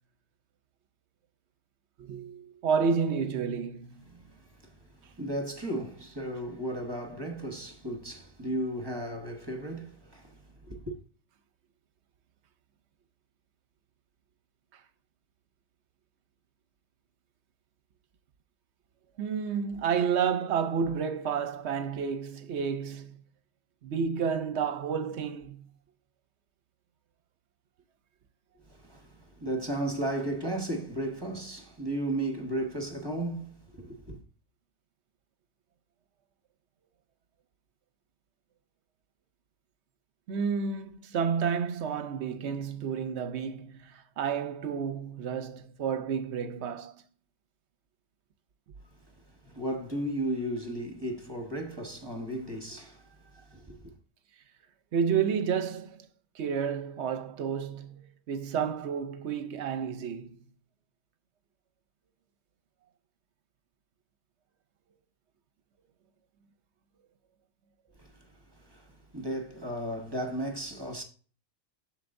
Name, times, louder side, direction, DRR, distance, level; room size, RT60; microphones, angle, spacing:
voice 1, 2.0-4.0 14.7-14.8 19.2-23.2 23.8-25.6 40.3-47.0 54.9-56.1 56.3-58.0 58.3-60.4, right 6 dB, 60° right, 0.9 m, -30 dB
voice 2, 4.1-4.8 5.2-11.0 28.7-34.2 49.4-53.9 68.0-68.1 68.6-71.0, right 1 dB, 20° right, 1.1 m, -35 dB
7.9 x 6.5 x 2.6 m
omnidirectional pair, 1.4 m